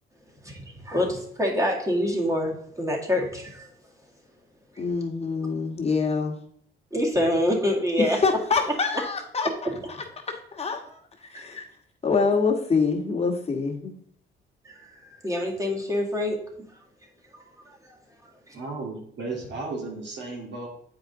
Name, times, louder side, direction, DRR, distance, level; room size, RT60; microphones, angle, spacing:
voice 1, 0.4-3.7 6.9-8.2 11.3-11.5 14.7-16.7 17.9-18.0 18.5-18.6, left 1 dB, 15° right, 0 dB, 1.9 m, -26 dB
voice 2, 4.8-6.4 8.1-9.5 10.5-11.0 11.3-11.6 12.0-13.9, left 4 dB, 30° left, 2 dB, 1.6 m, -25 dB
voice 3, 18.5-20.7, right 3 dB, 65° right, -1 dB, 2.2 m, -34 dB
7.9 x 4.8 x 3.9 m, 0.65 s
cardioid pair, 90°, 20 cm